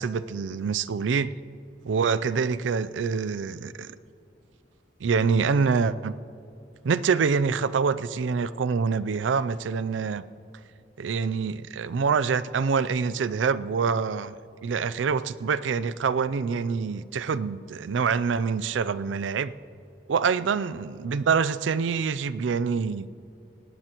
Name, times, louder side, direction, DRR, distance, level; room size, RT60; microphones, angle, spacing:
voice 1, 0.0-1.3 1.8-3.9 5.0-6.1 6.8-10.2 11.0-14.4 14.6-19.5 20.1-23.1, right 5 dB, 80° right, 0.4 m, -26 dB
18.0 x 18.0 x 3.0 m
head